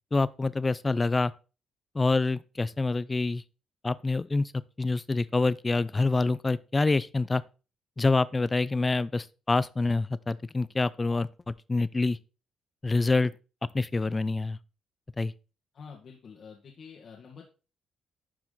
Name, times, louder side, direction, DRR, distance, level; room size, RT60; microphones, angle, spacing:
voice 1, 0.1-1.3 1.9-3.4 3.8-4.5 4.8-7.4 8.0-12.2 12.8-13.3 13.7-14.6 15.2-15.3, left 3 dB, 25° left, 0.5 m, -26 dB
voice 2, 15.7-17.4, left 6 dB, 55° left, 1.9 m, -47 dB
11.5 x 4.9 x 4.0 m
cardioid pair, 90°, 0 cm